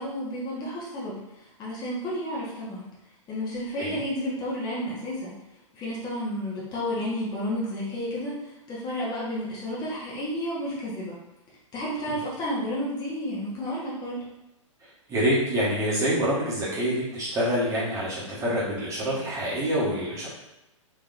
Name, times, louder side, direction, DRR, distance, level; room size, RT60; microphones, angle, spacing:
voice 1, 0.0-2.8 3.3-5.3 5.7-11.2 11.7-14.2, equal, 25° left, -6 dB, 1.2 m, -31 dB
voice 2, 15.1-20.3, equal, 20° right, -8 dB, 1.2 m, -26 dB
3.5 x 3.0 x 2.5 m, 0.94 s
figure-of-eight pair, 110°, 17 cm